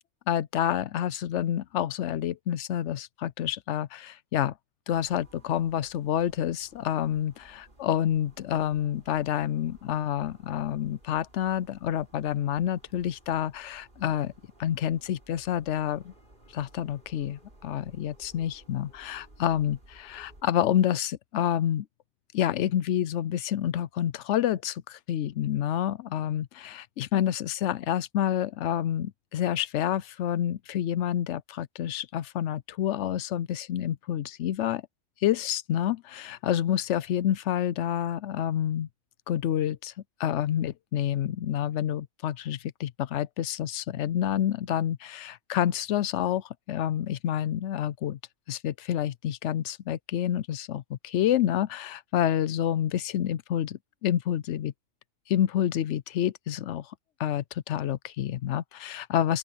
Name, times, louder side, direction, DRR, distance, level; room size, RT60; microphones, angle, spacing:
voice 1, 0.3-4.5 4.9-14.3 14.6-16.1 16.5-21.9 22.3-34.8 35.2-38.9 39.3-39.9 40.2-48.2 48.5-54.7 55.3-56.9 57.2-59.4, left 11 dB, 65° left, 0.8 m, -28 dB
sound 1, 4.9-20.4, right 1 dB, 35° right, 4.9 m, -57 dB
open air
omnidirectional pair, 1.4 m